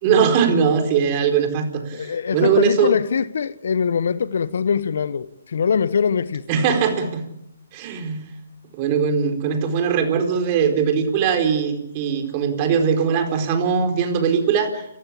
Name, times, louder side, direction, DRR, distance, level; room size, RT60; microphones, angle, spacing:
voice 1, 0.0-2.9 6.5-7.2 7.7-8.3 8.7-14.9, right 6 dB, 35° right, 4.4 m, -20 dB
voice 2, 1.9-6.4, left 6 dB, 65° left, 1.1 m, -22 dB
29.5 x 15.0 x 8.6 m
hypercardioid pair, 145°, 0 cm